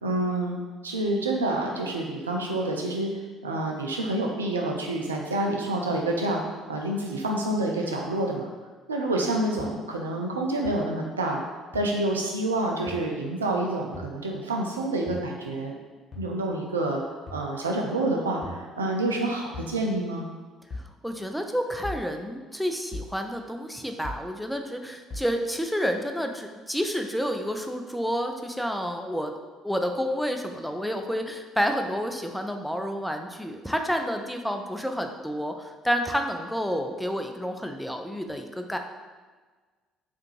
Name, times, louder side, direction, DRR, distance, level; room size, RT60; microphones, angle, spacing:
voice 1, 0.0-0.6 0.8-3.1 3.4-8.5 8.9-11.4 11.7-15.7 16.2-17.0 17.3-20.2, right 2 dB, 90° right, 1 dB, 0.3 m, -28 dB
sound 1, 9.6-9.7 10.6-10.7 11.7-11.8 12.9-13.0 13.9-14.1 15.1-15.3 16.1-16.3 17.3-17.5 18.4-18.6 19.5-19.8 20.7-20.9 21.8-22.1 22.9-23.1 24.0-24.3 25.1-25.3, left 1 dB, 45° left, 1.0 m, -38 dB
voice 2, 20.8-29.3 29.6-38.8, equal, ahead, 4 dB, 0.4 m, -29 dB
3.3 x 2.4 x 3.1 m, 1.4 s
hypercardioid pair, 55°, 0 cm